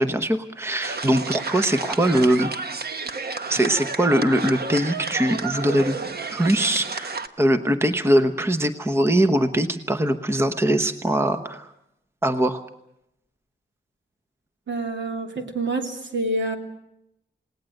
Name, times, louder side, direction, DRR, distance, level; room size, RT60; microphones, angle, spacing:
voice 1, 0.0-2.5 3.5-6.0 6.3-11.7 12.2-12.6, right 1 dB, 15° right, 9 dB, 1.0 m, -21 dB
sound 1, 0.8-7.3, right 4 dB, 55° right, 1.2 m, -31 dB
voice 2, 14.7-16.6, right 2 dB, 70° right, 4 dB, 3.0 m, -27 dB
29.0 x 18.5 x 7.9 m, 0.83 s
wide cardioid pair, 170°, 19 cm